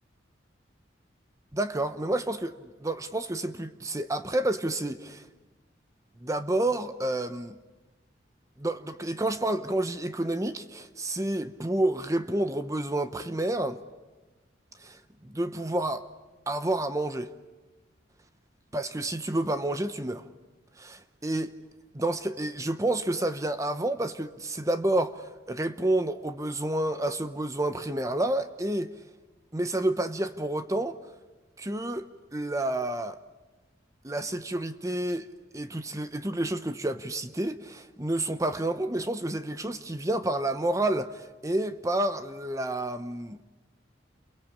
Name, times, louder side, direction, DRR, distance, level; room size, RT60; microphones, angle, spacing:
voice 1, 1.5-5.3 6.2-7.6 8.6-13.8 14.8-16.0 16.5-17.3 18.7-20.2 20.8-21.5 21.9-28.9 29.5-31.0 31.6-32.0 32.3-33.2 34.0-35.3 35.5-43.4, right 1 dB, 15° right, 0.8 m, -29 dB
29.5 x 23.0 x 8.6 m
head